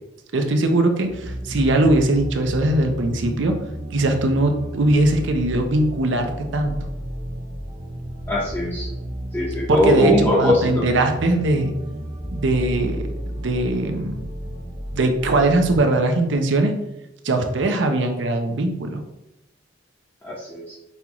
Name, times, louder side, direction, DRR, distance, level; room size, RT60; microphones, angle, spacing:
voice 1, 0.3-3.5 3.9-6.8 9.7-11.7 12.3-14.1 14.9-16.7 17.2-19.0, right 2 dB, 75° right, 5 dB, 0.6 m, -20 dB
sound 1, 1.0-15.8, equal, 25° right, 0.6 m, -32 dB
voice 2, 8.3-8.9 9.3-10.8 20.2-20.7, left 1 dB, 10° left, -8 dB, 0.8 m, -21 dB
5.5 x 2.4 x 2.9 m, 0.89 s
head